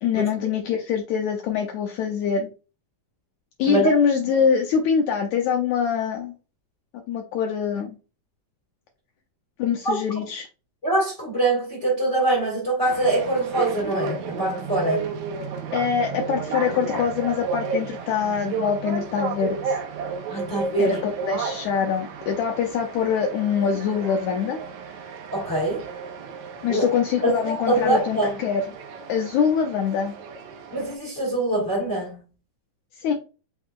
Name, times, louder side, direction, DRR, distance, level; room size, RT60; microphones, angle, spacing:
voice 1, 0.0-2.5 3.6-6.3 7.1-8.0 9.6-10.5 15.7-19.8 20.8-24.6 26.6-28.6 29.1-30.1 33.0-33.1, left 7 dB, 85° left, 1.7 m, -24 dB
voice 2, 9.8-10.2 10.8-15.1 20.3-21.0 25.3-25.8 26.7-26.9 27.2-28.4 30.7-32.2, right 2 dB, 30° left, 1.5 m, -24 dB
sound 1, 12.8-31.0, right 5 dB, 70° right, 1.9 m, -33 dB
5.8 x 3.6 x 2.4 m
omnidirectional pair, 4.0 m